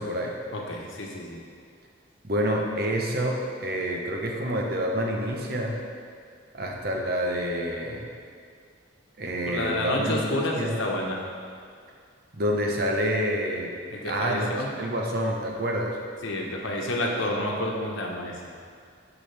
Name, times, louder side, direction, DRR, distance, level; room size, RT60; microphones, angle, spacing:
voice 1, 0.0-0.4 2.2-5.8 6.5-8.0 9.2-10.2 10.5-10.8 12.3-13.7 14.1-16.0, equal, 50° right, 0 dB, 0.9 m, -28 dB
voice 2, 0.5-1.4 9.5-11.3 13.9-14.9 16.2-18.5, left 1 dB, 75° left, -1 dB, 1.1 m, -29 dB
12.0 x 4.9 x 3.4 m, 2.2 s
head